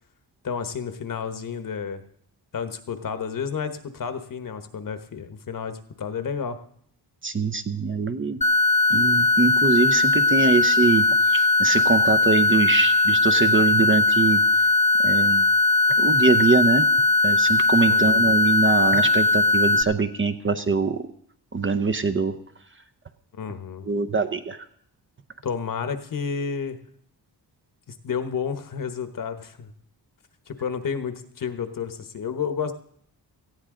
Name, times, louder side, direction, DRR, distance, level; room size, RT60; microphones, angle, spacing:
voice 1, 0.4-2.0 2.5-6.6 17.9-18.2 23.3-23.8 25.4-26.8 27.9-29.7 30.5-32.7, left 6 dB, 50° left, 9 dB, 1.2 m, -31 dB
voice 2, 7.2-8.4 8.9-14.4 15.0-15.4 16.0-16.9 17.2-21.0 21.5-22.3 23.8-24.6, right 4 dB, 30° right, 9 dB, 0.7 m, -23 dB
sound 1, 8.4-19.8, left 3 dB, 15° left, 0.7 m, -19 dB
18.5 x 14.5 x 3.8 m, 0.65 s
wide cardioid pair, 130°, 41 cm